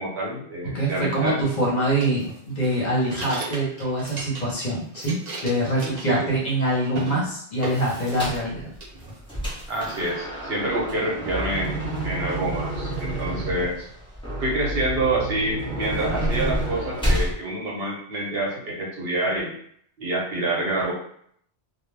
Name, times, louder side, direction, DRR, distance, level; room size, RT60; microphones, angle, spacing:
voice 1, 0.0-1.4 6.1-6.2 9.7-11.8 12.0-13.9 14.4-19.5 20.0-20.9, right 1 dB, 65° right, -3 dB, 1.0 m, -27 dB
voice 2, 0.7-8.6, right 1 dB, 45° left, -4 dB, 0.8 m, -24 dB
sound 1, 2.0-4.6 4.9-6.6 6.8-7.2 7.6-8.5 8.8-9.6, right 3 dB, 45° right, 0.7 m, -36 dB
sound 2, 8.1-8.5 9.0-17.3, right 1 dB, 5° left, 0.7 m, -29 dB
2.1 x 2.1 x 3.2 m, 0.64 s
omnidirectional pair, 1.1 m